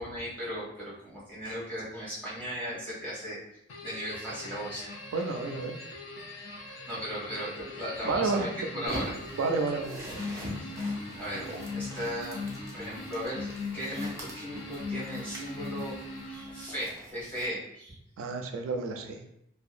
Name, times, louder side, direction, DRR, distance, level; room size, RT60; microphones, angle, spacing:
voice 1, 0.0-3.4 3.8-4.8 6.9-8.5 8.8-9.1 10.6-10.7 11.2-12.4 12.7-16.0 16.3-17.9, equal, 10° left, -9 dB, 1.0 m, -37 dB
sound 1, 3.7-16.9, left 3 dB, 65° left, 0.5 m, -40 dB
voice 2, 5.1-5.7 8.0-8.9 9.3-10.0 18.2-19.2, right 3 dB, 85° right, 4 dB, 0.3 m, -30 dB
sound 2, 8.8-17.5, right 1 dB, 15° right, 0.4 m, -44 dB
2.7 x 2.2 x 2.4 m, 0.77 s
head